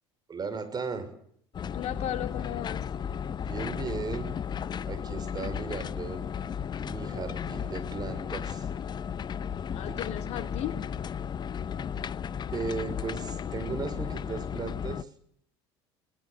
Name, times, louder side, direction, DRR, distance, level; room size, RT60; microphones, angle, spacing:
voice 1, 0.3-1.1 3.4-4.3 4.9-6.2 6.8-8.7 9.8-10.1 12.5-15.1, right 4 dB, 30° right, 5.9 m, -36 dB
sound 1, 1.5-15.0, left 7 dB, 30° left, 0.9 m, -34 dB
voice 2, 1.7-2.9 9.7-10.9, left 11 dB, 55° left, 2.7 m, -35 dB
22.0 x 19.5 x 8.3 m
hypercardioid pair, 70°, 14 cm